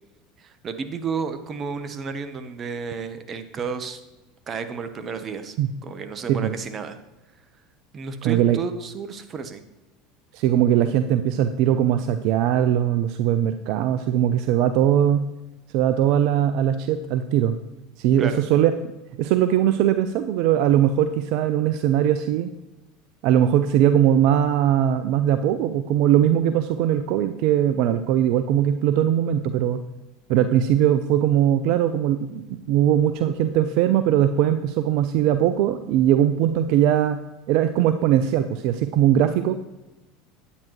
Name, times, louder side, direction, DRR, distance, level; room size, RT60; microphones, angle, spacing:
voice 1, 0.4-4.0 4.5-5.6 5.8-7.0 7.9-9.6 18.2-18.4, right 5 dB, 35° right, 10 dB, 1.0 m, -32 dB
voice 2, 8.2-8.6 10.3-15.3 15.7-17.6 18.0-18.7 19.2-22.5 23.2-29.8 30.3-37.2 37.5-39.6, right 10 dB, 60° right, 11 dB, 0.4 m, -20 dB
9.8 x 8.8 x 3.1 m, 1.0 s
hypercardioid pair, 85°, 0 cm